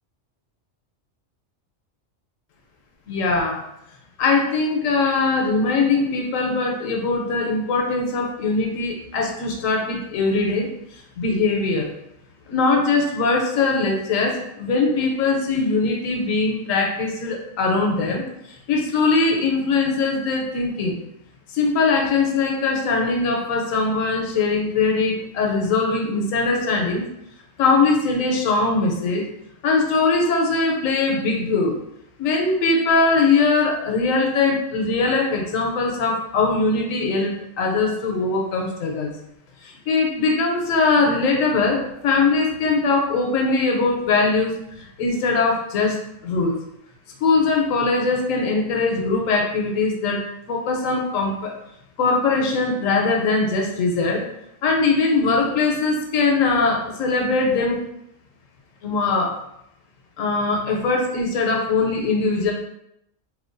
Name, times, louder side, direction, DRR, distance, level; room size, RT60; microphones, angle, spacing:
voice 1, 3.1-3.6 4.2-10.7 11.2-11.9 12.5-21.0 21.5-27.0 27.6-29.3 29.6-31.8 32.2-39.1 39.6-46.6 47.2-51.5 52.0-54.2 54.6-57.8 58.8-59.4 60.2-62.5, left 3 dB, 80° left, 1 dB, 1.0 m, -21 dB
3.2 x 2.2 x 2.5 m, 0.81 s
omnidirectional pair, 1.4 m